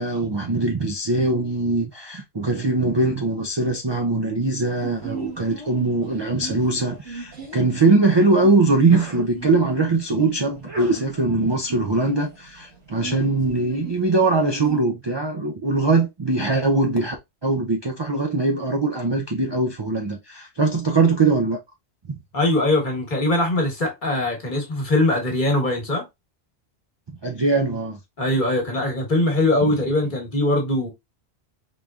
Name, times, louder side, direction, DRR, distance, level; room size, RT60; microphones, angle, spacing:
voice 1, 0.0-17.2 17.4-21.6 22.1-22.2 27.2-28.0, right 3 dB, 40° right, 0.4 m, -21 dB
Sneeze, 4.8-14.8, right 3 dB, 70° right, 1.5 m, -37 dB
voice 2, 22.3-26.0 28.2-30.9, left 1 dB, 45° left, 1.4 m, -21 dB
3.9 x 3.4 x 2.3 m
omnidirectional pair, 1.2 m